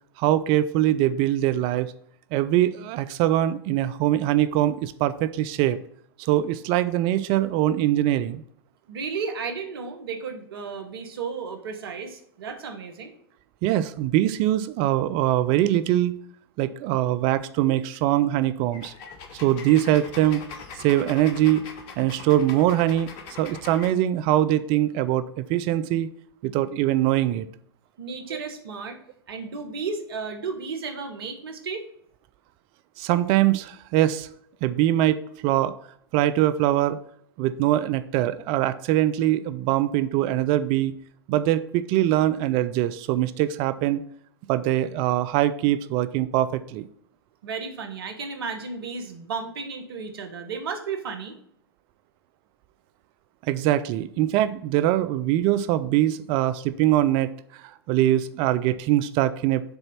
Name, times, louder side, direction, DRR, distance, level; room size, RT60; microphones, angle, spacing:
voice 1, 0.2-1.9 2.3-5.8 6.2-8.4 13.6-16.1 16.6-18.9 19.4-20.4 20.8-21.7 22.0-23.1 23.4-26.1 26.4-27.5 28.3-28.4 33.0-34.3 34.6-35.7 36.1-37.0 37.4-40.9 41.3-44.0 44.5-46.9 53.4-59.6, right 13 dB, 40° right, 13 dB, 0.4 m, -22 dB
voice 2, 8.9-13.1 28.0-29.0 29.3-31.9 47.4-51.4, right 5 dB, 65° right, 6 dB, 1.3 m, -33 dB
sound 1, 18.7-23.9, left 5 dB, 45° left, 1.2 m, -41 dB
7.0 x 4.0 x 5.7 m, 0.66 s
figure-of-eight pair, 100°, 13 cm